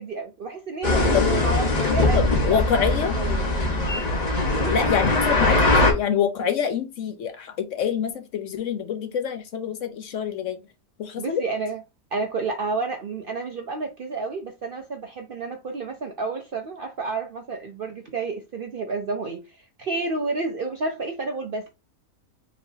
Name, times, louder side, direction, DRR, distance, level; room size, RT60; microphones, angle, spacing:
voice 1, 0.0-3.6 4.5-4.7 11.2-11.8 12.1-21.7, right 3 dB, 55° right, 0.6 m, -31 dB
sound 1, 0.8-5.9, left 2 dB, 30° left, 1.0 m, -21 dB
voice 2, 2.1-3.1 4.7-10.6 11.0-11.4, left 7 dB, 65° left, 1.0 m, -26 dB
5.1 x 3.2 x 2.7 m
omnidirectional pair, 1.5 m